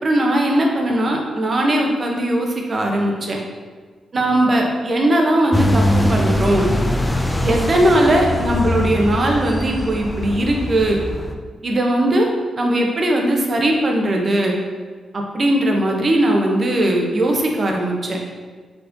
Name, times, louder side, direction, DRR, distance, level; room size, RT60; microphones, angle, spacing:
voice 1, 0.0-3.4 4.1-6.7 7.4-11.0 11.6-12.3 12.5-14.5 15.1-18.2, right 1 dB, 35° right, 1 dB, 0.6 m, -19 dB
sound 1, 5.5-11.4, left 1 dB, 10° left, 0.3 m, -21 dB
4.4 x 4.0 x 2.6 m, 1.5 s
cardioid pair, 110°, 0 cm